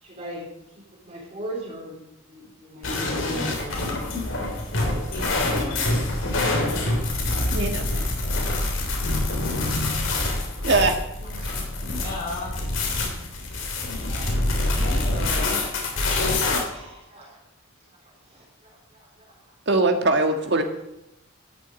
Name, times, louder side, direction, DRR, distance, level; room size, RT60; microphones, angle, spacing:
voice 1, 0.0-0.5 0.7-2.0 2.3-3.8 4.7-5.1 7.1-7.2 7.9-8.3 8.7-9.8 11.2-11.6 13.1-14.4 16.0-17.4 18.0-19.3, right 1 dB, 30° right, -4 dB, 4.0 m, -42 dB
sound 1, 2.8-16.6, left 2 dB, 65° left, 3.4 m, -25 dB
voice 2, 5.1-6.3 12.0-12.6 14.8-15.6, left 2 dB, 40° left, -5 dB, 4.3 m, -34 dB
voice 3, 7.5-7.9 10.6-11.0 19.7-20.6, right 2 dB, 55° right, 5 dB, 1.7 m, -21 dB
13.0 x 7.7 x 7.9 m, 0.89 s
head